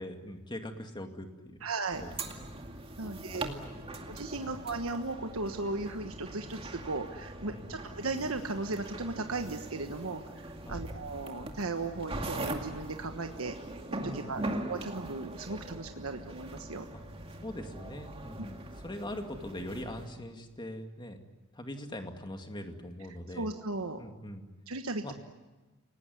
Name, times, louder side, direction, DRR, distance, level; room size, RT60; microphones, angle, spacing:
voice 1, 0.0-1.6 2.0-2.5 3.0-3.9 4.4-4.5 7.5-7.7 10.7-10.9 14.0-14.4 16.9-17.0 17.4-21.2 21.5-23.5 24.0-24.5 25.0-25.1, left 1 dB, 20° left, 5 dB, 2.3 m, -42 dB
voice 2, 1.6-2.0 3.0-3.5 4.1-13.5 14.0-14.4 14.7-16.9 23.3-24.0 24.7-25.1, right 3 dB, 85° right, 5 dB, 1.4 m, -36 dB
sound 1, 1.9-20.1, right 2 dB, 30° right, 2.3 m, -41 dB
29.0 x 19.0 x 9.6 m, 1.2 s
head